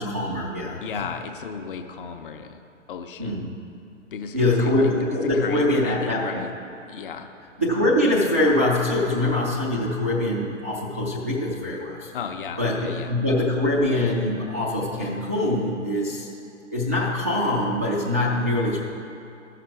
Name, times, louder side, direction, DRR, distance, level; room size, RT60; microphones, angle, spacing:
voice 1, 0.0-1.0 3.2-3.5 4.3-6.4 7.6-12.1 12.6-16.3 16.7-18.8, left 1 dB, 15° right, -9 dB, 0.3 m, -23 dB
voice 2, 0.8-2.6 2.9-3.5 4.1-6.5 6.9-7.3 12.1-13.1, left 6 dB, 45° left, 6 dB, 0.7 m, -34 dB
14.0 x 5.9 x 4.7 m, 2.7 s
figure-of-eight pair, 115°, 38 cm